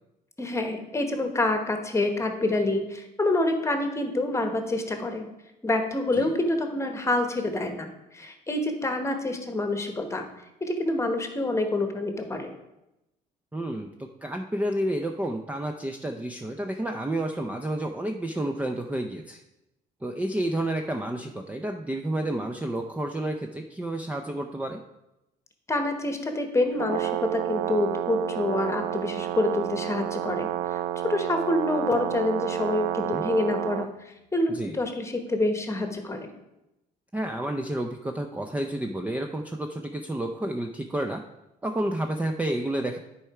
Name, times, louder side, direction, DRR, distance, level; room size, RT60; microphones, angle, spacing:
voice 1, 0.4-5.3 5.6-10.3 10.6-12.5 25.7-36.3, left 2 dB, 15° left, 6 dB, 1.1 m, -27 dB
voice 2, 13.5-19.4 20.0-24.8 33.0-33.2 34.5-34.8 37.1-41.2 41.6-43.0, right 1 dB, 10° right, 4 dB, 0.5 m, -30 dB
Brass instrument, 26.7-33.9, right 12 dB, 70° right, 0.5 m, -30 dB
10.0 x 4.5 x 4.8 m, 0.93 s
cardioid pair, 110°, 17 cm